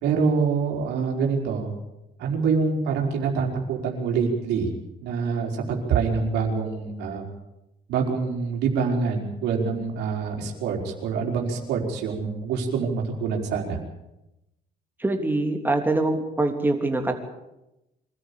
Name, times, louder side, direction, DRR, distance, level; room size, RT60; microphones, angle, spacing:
voice 1, 0.0-1.7 2.2-4.7 5.0-7.2 7.9-13.8, right 5 dB, 85° right, 1 dB, 4.5 m, -25 dB
voice 2, 15.0-17.2, right 2 dB, 10° right, 4 dB, 3.3 m, -24 dB
24.5 x 13.5 x 8.6 m, 0.93 s
cardioid pair, 110°, 17 cm